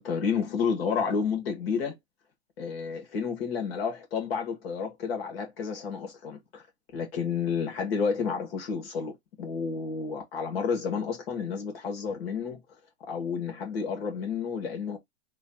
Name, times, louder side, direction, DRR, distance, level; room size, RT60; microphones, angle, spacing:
voice 1, 0.0-2.0 2.6-6.7 6.9-12.6 13.0-15.0, left 6 dB, 60° left, 1.5 m, -31 dB
3.1 x 2.3 x 4.1 m
hypercardioid pair, 145°, 34 cm